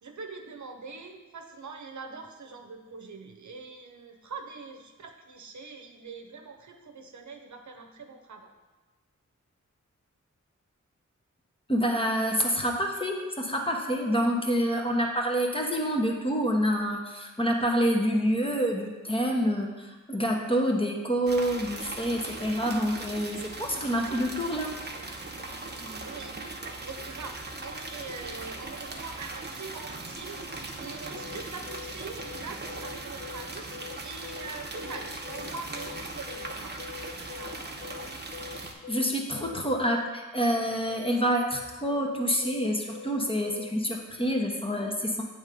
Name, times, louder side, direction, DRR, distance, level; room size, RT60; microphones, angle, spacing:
voice 1, 0.0-8.5 26.0-26.4 26.8-30.4 30.8-33.7 34.0-37.6, right 4 dB, 70° right, 4 dB, 0.8 m, -43 dB
voice 2, 11.7-24.8 38.9-45.2, equal, 15° left, 1 dB, 1.1 m, -27 dB
sound 1, 21.3-38.7, right 2 dB, 35° right, 0.9 m, -39 dB
sound 2, 31.1-43.7, left 8 dB, 45° left, 0.6 m, -44 dB
8.0 x 3.6 x 5.3 m, 1.2 s
cardioid pair, 55°, 30 cm